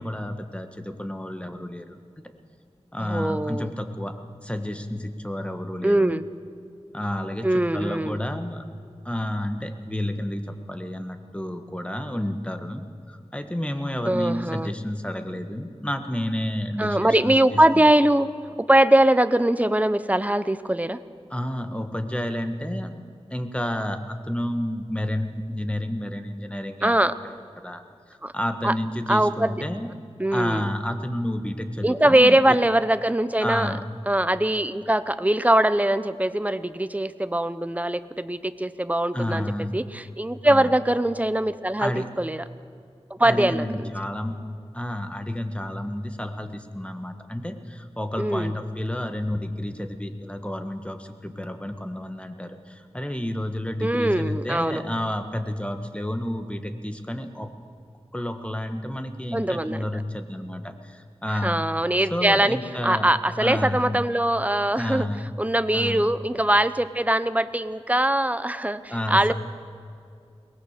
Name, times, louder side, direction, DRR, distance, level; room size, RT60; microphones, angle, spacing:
voice 1, 0.0-2.2 2.9-4.2 4.4-6.2 6.9-8.6 9.0-17.9 21.3-22.9 23.3-27.8 28.1-29.9 30.3-32.6 33.4-33.8 39.1-39.8 40.4-40.7 41.8-42.1 43.2-44.4 44.7-57.5 58.1-61.6 62.1-63.1 63.4-64.1 64.7-65.3 65.7-66.1 68.9-69.3, left 1 dB, 10° left, 7 dB, 1.6 m, -30 dB
voice 2, 3.0-3.7 5.8-6.2 7.4-8.2 14.1-14.7 16.8-18.3 18.7-21.0 26.8-27.1 28.2-28.3 28.6-28.7 29.1-29.5 30.2-30.7 31.8-33.7 34.1-39.4 39.7-41.9 42.2-42.4 43.1-43.7 48.2-48.5 53.8-54.8 59.3-59.8 61.4-62.6 62.8-65.1 65.4-69.3, right 1 dB, 15° right, 13 dB, 0.8 m, -22 dB
22.5 x 18.5 x 6.7 m, 2.4 s
wide cardioid pair, 55°, 11 cm